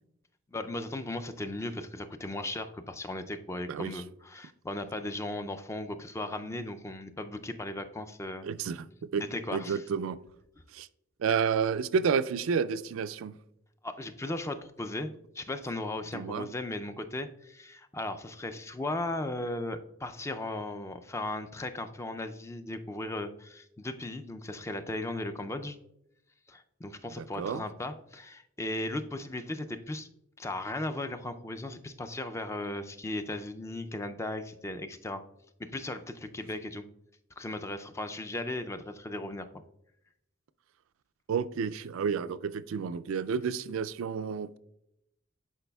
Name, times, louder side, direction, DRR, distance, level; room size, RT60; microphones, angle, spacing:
voice 1, 0.5-8.5 9.2-9.8 13.8-15.1 15.3-25.8 26.5-30.1 30.4-35.2 35.6-36.8 37.4-39.6, left 2 dB, 15° left, 8 dB, 0.4 m, -37 dB
voice 2, 8.4-8.9 9.1-9.2 9.5-10.2 10.7-10.9 11.2-13.3 16.1-16.5 27.2-27.6 41.3-44.6, right 6 dB, 75° right, 14 dB, 0.3 m, -30 dB
11.0 x 4.8 x 2.3 m, 0.79 s
head